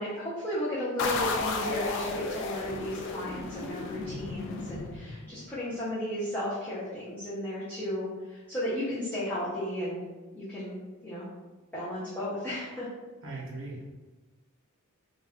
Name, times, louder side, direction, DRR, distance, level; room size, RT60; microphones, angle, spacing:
voice 1, 0.0-10.0 10.3-10.8 11.0-11.2 11.7-12.9, equal, 10° left, -10 dB, 0.6 m, -34 dB
sound 1, 1.0-5.5, left 3 dB, 55° left, 0.3 m, -34 dB
voice 2, 13.2-13.8, right 2 dB, 60° right, -5 dB, 0.7 m, -39 dB
2.4 x 2.3 x 3.4 m, 1.2 s
head